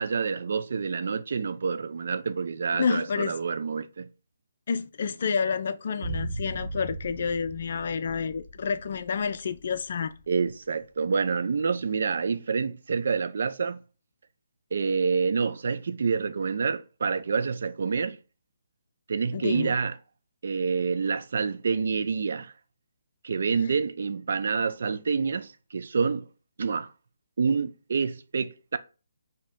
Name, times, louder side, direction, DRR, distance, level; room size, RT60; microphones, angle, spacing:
voice 1, 0.0-4.1 10.3-13.8 14.7-18.2 19.1-20.0 20.4-22.5 23.2-26.3 26.6-26.9 27.4-28.8, right 5 dB, 60° right, 0.5 m, -27 dB
voice 2, 2.7-3.4 4.7-10.1 19.3-19.8, left 6 dB, 55° left, 0.4 m, -29 dB
sound 1, 6.0-10.2 10.5-10.6, right 2 dB, 40° right, 0.9 m, -38 dB
5.2 x 2.8 x 3.6 m
figure-of-eight pair, 145°, 0 cm